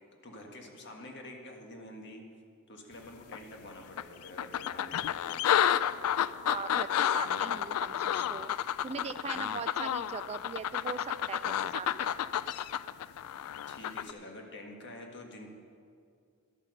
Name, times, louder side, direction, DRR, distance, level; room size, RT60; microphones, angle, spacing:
voice 1, 0.2-2.2 2.7-5.4 13.7-15.5, left 1 dB, 55° left, 1 dB, 1.6 m, -47 dB
sound 1, 3.3-3.4 4.0-14.1, left 10 dB, 80° left, 0.3 m, -31 dB
voice 2, 6.5-8.5 8.8-12.1, right 5 dB, 30° right, 11 dB, 0.3 m, -40 dB
12.0 x 8.5 x 6.5 m, 2.3 s
head